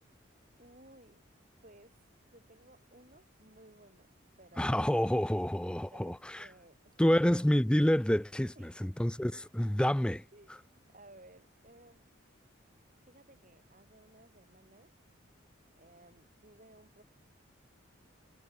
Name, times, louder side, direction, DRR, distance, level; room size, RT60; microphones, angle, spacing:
voice 1, 0.6-1.2 1.6-2.0 2.3-4.1 4.4-5.1 5.9-7.2 8.6-9.1 10.3-10.5 10.9-12.1 13.1-14.9 15.8-17.0, right 1 dB, 40° right, 7.3 m, -59 dB
voice 2, 4.6-6.5 7.0-10.2, equal, 5° left, 0.4 m, -28 dB
head